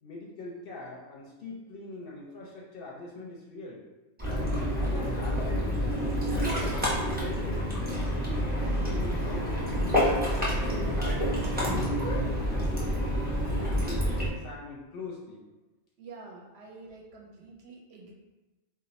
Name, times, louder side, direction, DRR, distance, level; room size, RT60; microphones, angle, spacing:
voice 1, 0.0-3.8 4.3-6.8 7.2-8.0 8.3-10.0 10.4-13.2 13.6-15.4, left 2 dB, 60° left, -3 dB, 0.7 m, -42 dB
Ocean, 4.2-14.3, equal, 10° right, 0.5 m, -28 dB
voice 2, 16.0-18.1, right 3 dB, 65° right, -1 dB, 0.8 m, -48 dB
2.4 x 2.2 x 4.0 m, 1.1 s
omnidirectional pair, 1.3 m